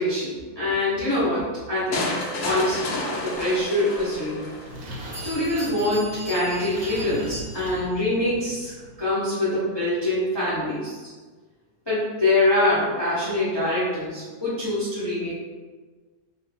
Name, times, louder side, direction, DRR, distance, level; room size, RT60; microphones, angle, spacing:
voice 1, 0.0-2.1 2.4-2.9 3.2-4.5 5.2-8.7 9.0-11.1 11.9-15.4, left 1 dB, 25° left, -10 dB, 0.7 m, -24 dB
sound 1, 1.9-4.9, left 2 dB, 70° left, 0.8 m, -30 dB
Bell, 3.9-4.0 4.7-4.8 5.1-7.9, equal, 15° right, 1.3 m, -39 dB
sound 2, 4.1-9.1, right 1 dB, 70° right, 1.0 m, -40 dB
2.8 x 2.6 x 3.4 m, 1.4 s
omnidirectional pair, 1.7 m